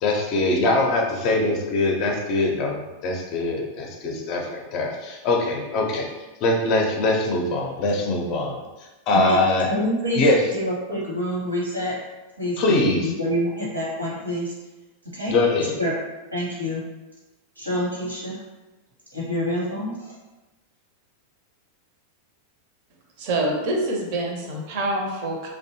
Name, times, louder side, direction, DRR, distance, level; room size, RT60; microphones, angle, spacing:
voice 1, 0.0-6.1 6.4-8.6 9.1-9.7 10.2-10.4 12.6-13.1 15.3-15.7, left 2 dB, 40° left, 1 dB, 0.5 m, -22 dB
voice 2, 9.7-10.2 10.5-11.9 12.4-14.5 15.1-15.3 15.8-15.9 16.3-16.8 17.6-18.4 19.1-20.1, equal, 85° right, -6 dB, 0.9 m, -27 dB
voice 3, 23.2-25.5, right 1 dB, 45° right, 1 dB, 0.5 m, -26 dB
2.6 x 2.1 x 2.7 m, 1.1 s
figure-of-eight pair, 90°, 0 cm